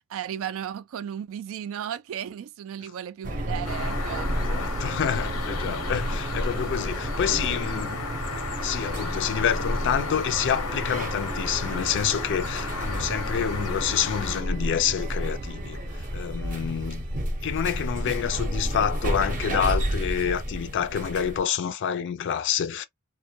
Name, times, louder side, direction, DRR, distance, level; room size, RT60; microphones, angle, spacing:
voice 1, 0.1-4.3, right 9 dB, 65° right, 0.3 m, -35 dB
sound 1, 3.2-21.4, right 1 dB, 35° right, 0.6 m, -31 dB
sound 2, 3.6-14.4, left 4 dB, 90° left, 0.9 m, -35 dB
voice 2, 4.3-8.0 8.6-17.0 17.4-22.8, left 8 dB, 55° left, 0.4 m, -28 dB
sound 3, 8.8-14.8, left 2 dB, 5° left, 0.5 m, -51 dB
2.2 x 2.1 x 2.7 m
head